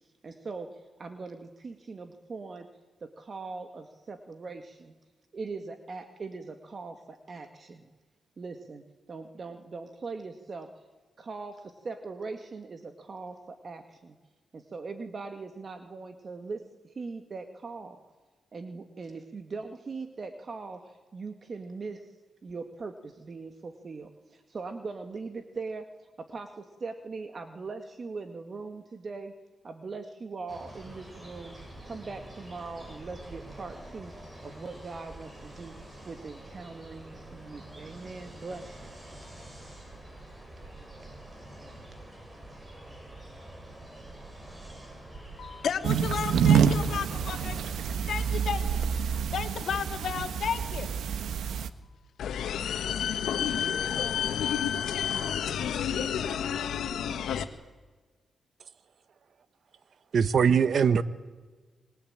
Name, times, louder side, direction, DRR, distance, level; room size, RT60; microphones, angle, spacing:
voice 1, 0.2-2.7 3.0-4.9 5.3-7.8 8.4-10.8 11.2-14.2 14.5-18.0 18.5-22.1 22.4-29.3 29.6-34.1 34.4-35.8 36.0-38.9, right 4 dB, 45° right, 2.0 m, -41 dB
sound 1, 30.5-47.9, right 1 dB, 25° right, 6.7 m, -46 dB
voice 2, 45.4-47.6 48.1-48.8 49.3-50.9, left 7 dB, 70° left, 2.4 m, -33 dB
sound 2, 45.8-51.7, right 7 dB, 85° right, 1.3 m, -27 dB
sound 3, 52.2-57.4, left 8 dB, 90° left, 1.7 m, -30 dB
voice 3, 60.1-61.0, right 6 dB, 60° right, 1.1 m, -21 dB
27.0 x 22.0 x 8.9 m
cardioid pair, 90°, 0 cm